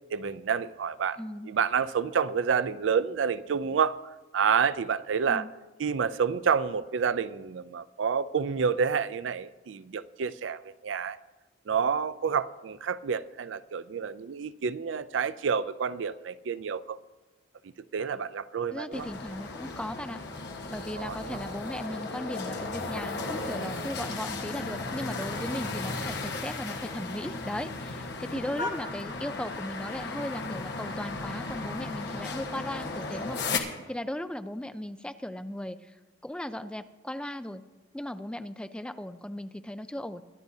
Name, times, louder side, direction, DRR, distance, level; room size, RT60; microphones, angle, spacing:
voice 1, 0.1-1.2 1.5-4.0 4.3-5.5 5.8-11.2 11.7-17.0 17.9-19.1 21.0-21.4, right 6 dB, 80° right, 0.4 m, -29 dB
voice 2, 1.2-1.5 5.3-5.5 18.7-20.2 20.7-35.9 36.2-37.6 37.9-40.2, left 1 dB, 5° left, 0.4 m, -37 dB
sound 1, 18.9-33.6, left 3 dB, 65° left, 1.3 m, -35 dB
23.5 x 10.5 x 2.7 m
head